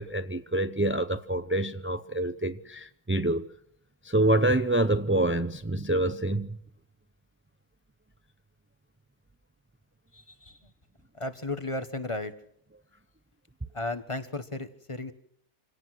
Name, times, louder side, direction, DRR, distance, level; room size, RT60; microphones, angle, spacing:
voice 1, 0.0-3.5 4.0-6.6, right 1 dB, 20° right, 0.3 m, -26 dB
voice 2, 10.1-10.7 11.1-12.3 13.7-15.1, left 2 dB, 20° left, 1.3 m, -35 dB
26.5 x 18.0 x 6.3 m
omnidirectional pair, 1.6 m